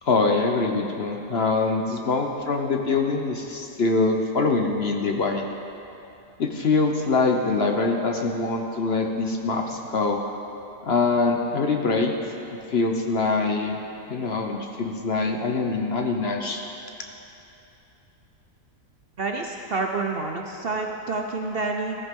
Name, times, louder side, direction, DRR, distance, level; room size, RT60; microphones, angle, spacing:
voice 1, 0.0-5.4 6.4-10.2 10.8-12.1 12.7-13.8 14.1-16.6, left 3 dB, 50° left, 3 dB, 0.9 m, -24 dB
voice 2, 19.2-22.0, right 3 dB, 50° right, 2 dB, 0.7 m, -28 dB
16.0 x 14.0 x 3.7 m, 2.9 s
omnidirectional pair, 1.6 m